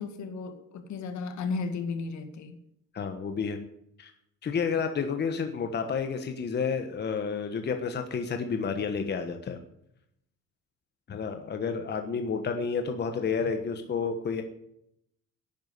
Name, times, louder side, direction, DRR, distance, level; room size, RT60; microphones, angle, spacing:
voice 1, 0.0-2.6, left 4 dB, 75° left, 8 dB, 2.2 m, -34 dB
voice 2, 2.9-3.6 4.0-4.1 4.4-9.6 11.1-14.4, left 5 dB, 35° left, 6 dB, 1.3 m, -30 dB
11.5 x 9.4 x 8.3 m, 0.77 s
cardioid pair, 160°, 29 cm